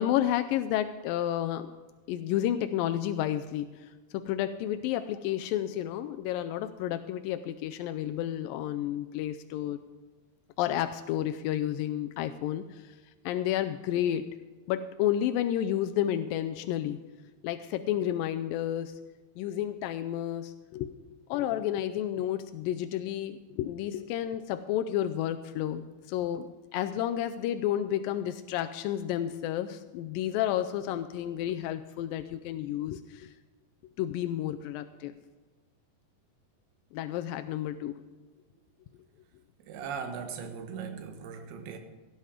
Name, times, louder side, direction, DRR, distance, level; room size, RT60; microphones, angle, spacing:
voice 1, 0.0-1.7 2.1-9.8 10.6-12.9 13.3-14.3 14.7-17.0 17.4-18.9 19.4-20.9 21.3-33.3 34.0-35.1 36.9-37.9, left 11 dB, 85° left, 2.0 m, -31 dB
voice 2, 39.6-41.8, right 6 dB, 75° right, 3.2 m, -39 dB
16.5 x 9.7 x 4.9 m
omnidirectional pair, 4.6 m